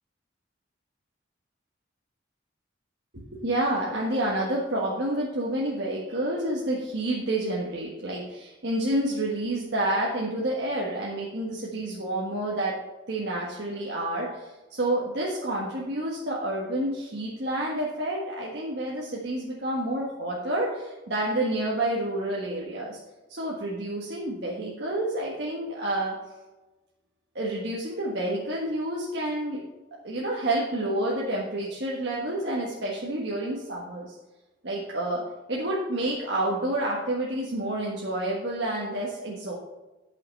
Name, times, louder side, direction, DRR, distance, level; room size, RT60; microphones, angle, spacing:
voice 1, 3.1-12.8 13.1-23.0 23.3-26.1 27.3-29.6 30.0-34.2 34.6-35.2 35.5-39.6, right 1 dB, 60° right, -4 dB, 1.5 m, -29 dB
11.0 x 5.8 x 5.4 m, 1.1 s
head